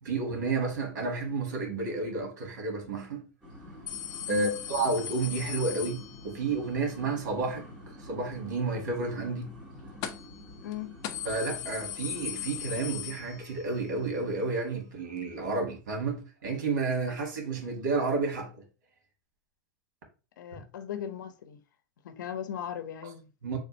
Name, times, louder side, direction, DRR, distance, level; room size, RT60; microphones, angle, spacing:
voice 1, 0.0-3.2 4.3-7.6 8.0-9.5 11.2-18.6 20.5-20.6 23.4-23.6, right 3 dB, 80° right, 1.7 m, -31 dB
sound 1, 3.4-13.5, left 1 dB, 10° right, 1.5 m, -48 dB
sound 2, 3.9-6.6 10.0-10.4 10.7-10.8 11.0-13.8 14.1-14.2 15.2-15.3, left 11 dB, 40° left, 0.5 m, -38 dB
voice 2, 10.6-11.0 20.4-21.6 22.0-23.3, left 10 dB, 85° left, 0.7 m, -37 dB
3.4 x 2.6 x 4.2 m
supercardioid pair, 145°, 10 cm